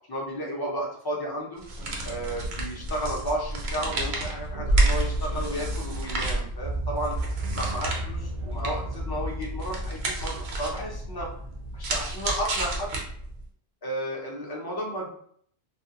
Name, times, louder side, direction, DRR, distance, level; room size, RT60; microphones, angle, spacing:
voice 1, 0.1-1.6 2.0-7.2 7.5-11.3 11.7-12.9 13.8-15.1, equal, 30° left, -2 dB, 0.4 m, -33 dB
sound 1, 1.6-13.4, right 2 dB, 75° right, 0.9 m, -30 dB
sound 2, 1.7-13.0, right 1 dB, 40° right, 0.5 m, -37 dB
2.4 x 2.2 x 2.7 m, 0.62 s
omnidirectional pair, 1.1 m